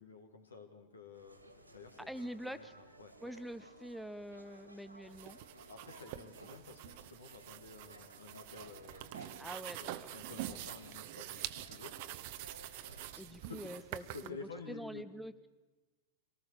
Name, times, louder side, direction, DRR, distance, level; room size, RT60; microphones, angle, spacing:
voice 1, 0.0-2.7 3.0-3.1 5.7-9.5 9.8-12.0 13.1-15.0, left 4 dB, 75° left, 5 dB, 2.5 m, -52 dB
sound 1, 1.1-13.1, right 1 dB, 85° right, 2.5 m, -58 dB
voice 2, 2.1-2.7 3.2-5.4 9.4-10.1 10.4-10.6 13.2-14.4 14.7-15.5, equal, ahead, 13 dB, 0.7 m, -45 dB
sound 2, 5.1-14.3, right 14 dB, 50° right, 0.9 m, -46 dB
25.0 x 18.5 x 6.8 m, 1.2 s
figure-of-eight pair, 90°, 0 cm